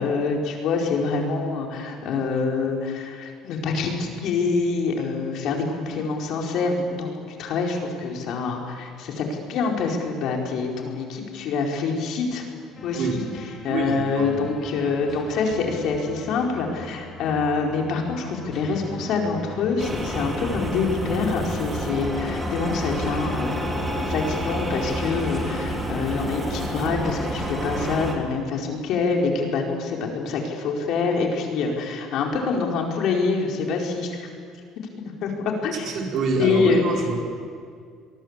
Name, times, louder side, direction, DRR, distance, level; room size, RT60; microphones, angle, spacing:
voice 1, 0.0-12.5 12.8-13.2 13.6-34.3 35.0-35.3 35.6-35.9 36.4-36.8, left 4 dB, 60° left, 1 dB, 4.6 m, -26 dB
sound 1, 12.7-27.6, left 2 dB, 30° left, 3.7 m, -39 dB
voice 2, 13.7-14.4 35.7-37.2, right 4 dB, 45° right, 0 dB, 4.8 m, -26 dB
sound 2, 19.8-28.1, right 1 dB, 10° right, 3.4 m, -29 dB
25.5 x 22.5 x 8.3 m, 2.1 s
cardioid pair, 140°, 0 cm